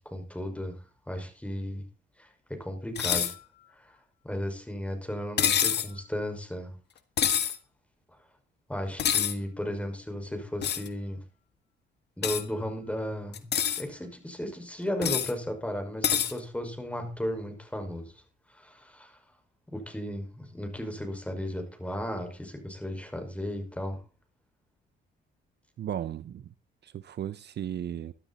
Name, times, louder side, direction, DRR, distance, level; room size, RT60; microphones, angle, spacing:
voice 1, 0.1-0.8 1.1-1.8 2.2-3.3 3.8-4.0 4.2-6.8 8.7-11.2 12.2-13.5 13.8-18.2 18.5-19.2 19.7-24.0, equal, 5° left, 5.8 m, -35 dB
sound 1, 3.0-3.3 5.4-5.9 7.2-7.6 9.0-9.3 10.6-10.9 12.2-12.4 13.3-13.8 15.0-15.3 16.0-16.3, left 8 dB, 60° left, 1.7 m, -26 dB
voice 2, 25.8-26.4 26.8-28.1, right 10 dB, 60° right, 0.8 m, -35 dB
13.0 x 12.5 x 4.3 m
cardioid pair, 90°, 20 cm